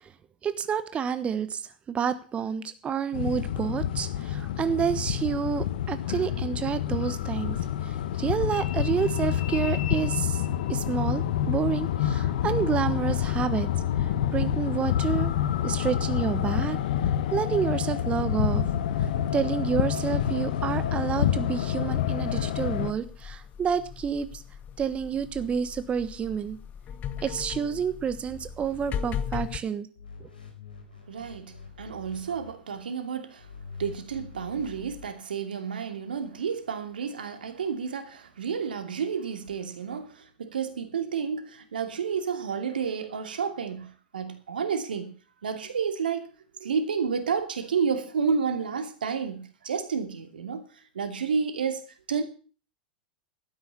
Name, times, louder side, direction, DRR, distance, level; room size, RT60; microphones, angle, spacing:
voice 1, 0.4-1.6 1.9-7.6 7.8-10.4 10.7-13.7 14.0-15.3 15.6-16.8 17.3-18.7 19.0-24.4 24.8-26.6 27.2-29.9 30.2-30.3, right 7 dB, 25° right, 1.2 m, -29 dB
sound 1, 3.1-22.9, left 10 dB, 65° left, 1.2 m, -27 dB
sound 2, 21.9-29.6, left 8 dB, 35° left, 1.2 m, -38 dB
sound 3, 28.2-29.6 30.0-32.8 33.4-35.1, left 4 dB, 90° left, 4.9 m, -46 dB
voice 2, 31.1-33.5 33.8-45.1 45.4-46.3 46.6-51.8 52.1-52.2, right 6 dB, 80° right, 2.7 m, -30 dB
12.5 x 9.6 x 7.1 m
hypercardioid pair, 105°, 5 cm